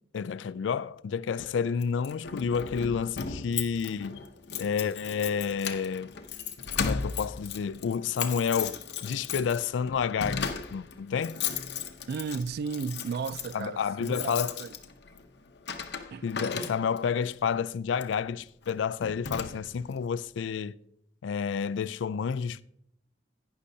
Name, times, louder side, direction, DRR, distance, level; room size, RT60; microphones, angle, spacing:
voice 1, 0.1-4.2 4.6-6.1 6.8-11.4 13.5-14.5 16.2-20.7 21.2-22.6, left 6 dB, 80° left, 0.3 m, -30 dB
Keys jangling, 1.8-17.2 17.9-18.2 18.6-18.8 19.0-19.9, left 6 dB, 65° left, 0.8 m, -36 dB
voice 2, 12.1-14.8 16.1-16.3, right 5 dB, 60° right, 0.3 m, -34 dB
11.5 x 9.9 x 2.7 m
head